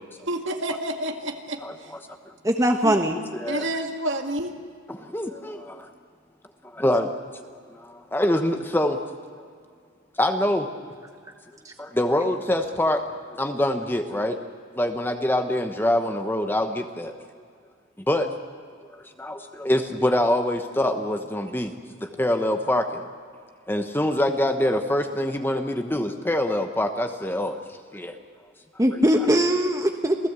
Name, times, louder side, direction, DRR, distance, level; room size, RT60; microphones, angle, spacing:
voice 1, 0.3-1.9 2.8-3.0 3.5-4.6, right 1 dB, 60° right, 4 dB, 2.1 m, -29 dB
voice 2, 2.4-3.2 11.6-11.7 28.8-30.2, equal, 15° right, 4 dB, 1.1 m, -21 dB
voice 3, 5.0-5.9 6.6-7.4 7.7-9.0 10.2-10.9 11.8-13.0 13.4-14.4 14.7-17.1 18.1-18.3 19.2-21.7 22.0-23.1 23.7-27.6 27.9-28.2 28.9-29.0, left 1 dB, 10° left, 6 dB, 1.0 m, -25 dB
27.5 x 17.0 x 8.2 m, 2.1 s
head